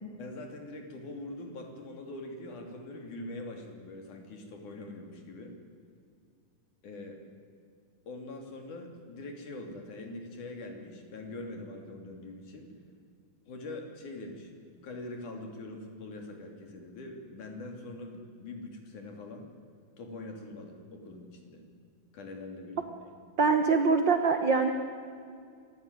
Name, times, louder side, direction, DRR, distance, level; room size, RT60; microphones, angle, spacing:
voice 1, 0.2-5.6 6.8-7.2 8.1-12.7 13.5-19.5 20.0-21.6 22.1-23.1, left 2 dB, 60° left, 3 dB, 4.2 m, -43 dB
voice 2, 23.4-24.7, right 4 dB, 80° right, 6 dB, 1.0 m, -24 dB
25.0 x 15.5 x 9.8 m, 2.3 s
omnidirectional pair, 4.1 m